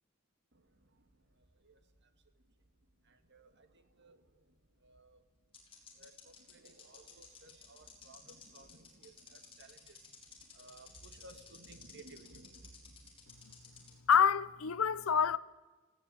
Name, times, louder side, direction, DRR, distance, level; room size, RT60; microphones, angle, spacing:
sound 1, 1.0-2.6 2.9-3.0 4.8-4.9 5.5-13.9, left 6 dB, 25° left, 5.1 m, -55 dB
voice 1, 3.3-3.7 4.0-4.2 4.8-5.2 6.0-9.9 10.6-12.9, right 2 dB, 55° right, 2.1 m, -57 dB
voice 2, 14.1-15.4, left 7 dB, 80° left, 0.7 m, -27 dB
19.0 x 16.5 x 9.0 m
head